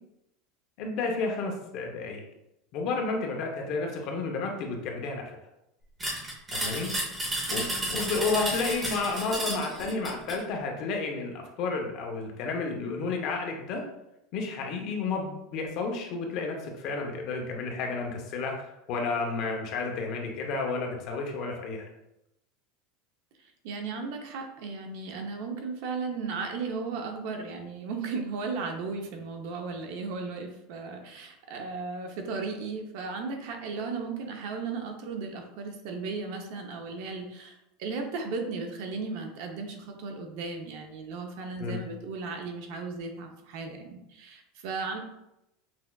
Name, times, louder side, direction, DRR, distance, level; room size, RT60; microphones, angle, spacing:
voice 1, 0.8-2.2 2.7-5.3 6.5-6.9 7.5-13.8 14.3-21.9 41.6-41.8, left 4 dB, 40° left, 2 dB, 0.6 m, -31 dB
sound 1, 6.0-10.4, right 1 dB, 15° right, 0.7 m, -32 dB
voice 2, 7.5-8.1 23.6-45.0, right 4 dB, 55° right, 3 dB, 0.6 m, -36 dB
5.8 x 2.4 x 2.2 m, 0.87 s
supercardioid pair, 175°, 0 cm